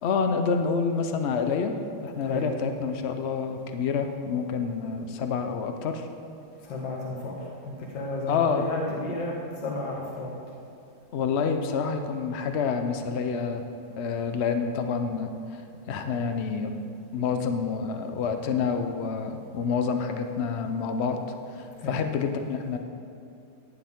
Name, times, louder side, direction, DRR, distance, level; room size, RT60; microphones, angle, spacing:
voice 1, 0.0-6.1 8.3-8.7 11.1-13.6 14.0-16.7 17.1-21.2 21.5-22.8, left 5 dB, 85° left, 6 dB, 0.5 m, -28 dB
voice 2, 6.6-7.4 7.6-10.3 21.8-22.0, left 2 dB, 65° left, -3 dB, 2.1 m, -32 dB
16.0 x 10.0 x 3.7 m, 2.7 s
omnidirectional pair, 2.2 m